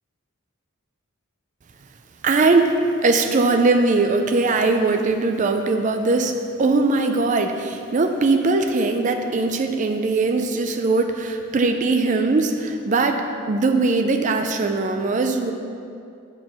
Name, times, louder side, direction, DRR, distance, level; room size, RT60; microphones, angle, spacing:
voice 1, 2.2-2.7 3.0-6.3 6.6-15.5, right 3 dB, 35° right, 5 dB, 0.4 m, -20 dB
7.4 x 4.5 x 5.7 m, 2.5 s
head